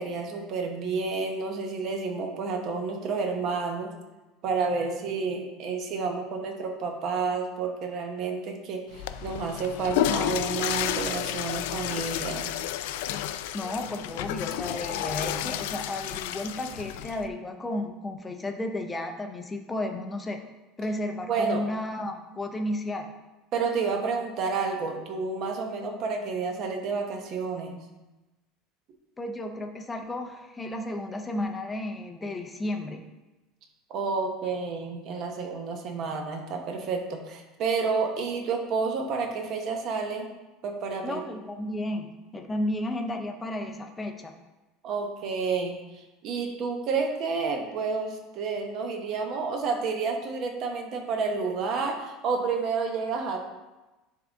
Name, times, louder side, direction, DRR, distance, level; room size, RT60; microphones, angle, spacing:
voice 1, 0.0-3.9 4.4-12.5 21.3-21.6 23.5-27.8 33.9-40.3 40.6-41.2 44.8-53.4, right 4 dB, 40° right, 3 dB, 0.9 m, -30 dB
Water / Toilet flush, 8.9-17.3, left 11 dB, 80° left, 0.3 m, -31 dB
voice 2, 13.5-20.4 20.8-23.1 29.2-33.1 41.0-44.3, left 1 dB, 10° left, 5 dB, 0.5 m, -33 dB
10.5 x 3.8 x 3.5 m, 1.1 s
cardioid pair, 170°, 0 cm